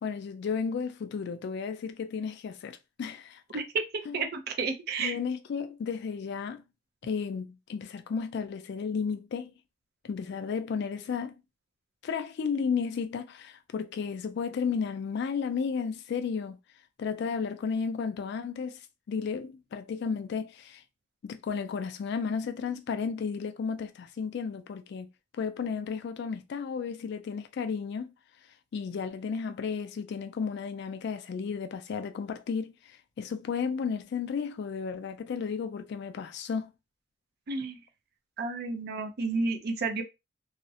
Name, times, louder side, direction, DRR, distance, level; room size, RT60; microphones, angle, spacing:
voice 1, 0.0-3.6 4.1-4.2 5.0-6.6 7.0-9.5 10.0-11.3 12.0-16.6 17.0-18.8 19.1-20.8 21.2-28.1 28.7-36.7, left 6 dB, 60° left, 0.3 m, -33 dB
voice 2, 4.1-5.2 37.5-37.8 38.4-40.0, right 4 dB, 55° right, 0.4 m, -31 dB
2.4 x 2.0 x 2.6 m
head